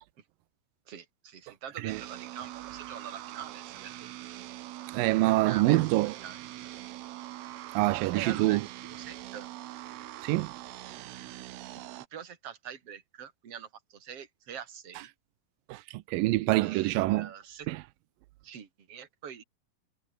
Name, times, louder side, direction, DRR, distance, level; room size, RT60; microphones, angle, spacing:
voice 1, 0.9-4.1 5.4-5.8 6.2-6.4 8.1-9.5 11.7-11.8 12.1-15.1 16.6-17.7 18.4-19.4, right 8 dB, 45° right, 3.6 m, -44 dB
sound 1, 1.9-12.1, right 15 dB, 70° right, 1.7 m, -43 dB
voice 2, 4.9-6.1 7.7-8.7 10.2-10.5 15.7-17.3 17.7-17.8, right 19 dB, 90° right, 2.4 m, -26 dB
omnidirectional pair, 3.9 m